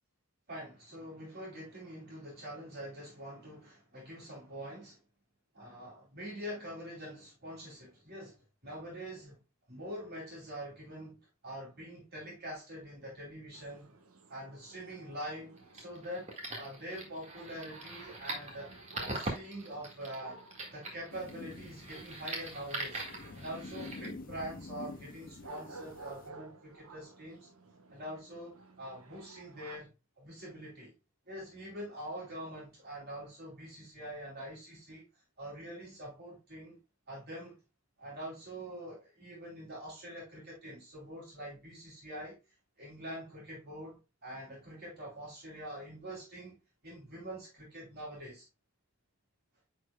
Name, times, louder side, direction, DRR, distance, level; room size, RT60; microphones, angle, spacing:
voice 1, 0.5-5.0 5.5-9.4 9.7-13.9 14.3-20.4 20.7-23.0 23.3-27.5 27.9-30.9 31.3-35.1 35.4-36.8 37.1-37.6 38.0-42.4 42.8-46.6 46.8-48.5, equal, 45° right, 3.0 m, -45 dB
sound 1, 13.5-29.8, right 3 dB, 80° right, 1.2 m, -55 dB
sound 2, 15.6-24.1, right 2 dB, 30° right, 1.8 m, -42 dB
sound 3, 21.1-26.3, left 4 dB, 40° left, 0.4 m, -48 dB
9.8 x 4.5 x 2.3 m
head